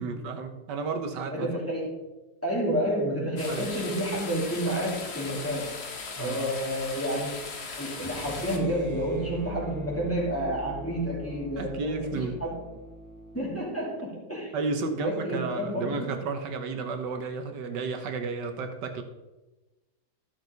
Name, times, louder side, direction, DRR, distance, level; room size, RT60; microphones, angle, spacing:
voice 1, 0.0-1.5 3.5-3.7 6.2-6.5 11.6-12.4 14.5-19.0, right 4 dB, 90° right, 6 dB, 1.6 m, -32 dB
voice 2, 1.3-2.0 2.4-5.7 6.2-7.4 7.8-12.6 13.3-14.6 15.0-16.1, equal, 10° left, -6 dB, 3.1 m, -30 dB
Fontana Piazza Vaticano, 3.4-8.6, left 4 dB, 45° left, 1.2 m, -38 dB
sound 1, 8.0-14.0, left 1 dB, 25° right, 0.4 m, -43 dB
13.0 x 6.4 x 4.0 m, 1.1 s
omnidirectional pair, 1.8 m